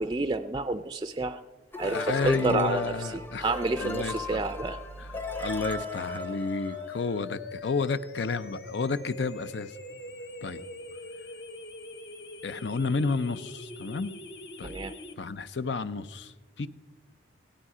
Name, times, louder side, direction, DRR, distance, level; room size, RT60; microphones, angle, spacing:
voice 1, 0.0-1.4 1.8-4.8 5.3-5.5 14.6-14.9, right 3 dB, 25° right, 9 dB, 0.4 m, -29 dB
sound 1, 1.7-7.2, left 1 dB, 10° left, 0.7 m, -39 dB
voice 2, 1.8-3.5 3.8-4.4 5.4-9.7 10.4-10.6 12.4-14.1 14.6-14.7 15.2-16.7, left 4 dB, 80° left, 14 dB, 0.6 m, -31 dB
sound 2, 5.1-15.1, left 4 dB, 65° left, 1.1 m, -41 dB
17.0 x 12.5 x 5.0 m, 1.3 s
head